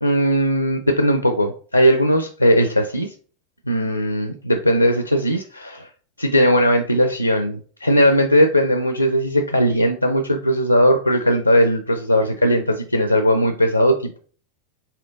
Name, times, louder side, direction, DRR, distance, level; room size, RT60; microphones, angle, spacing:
voice 1, 0.0-3.1 3.7-5.9 6.2-14.2, equal, 90° left, 8 dB, 0.4 m, -18 dB
4.3 x 3.7 x 2.5 m, 0.43 s
figure-of-eight pair, 90°, 0 cm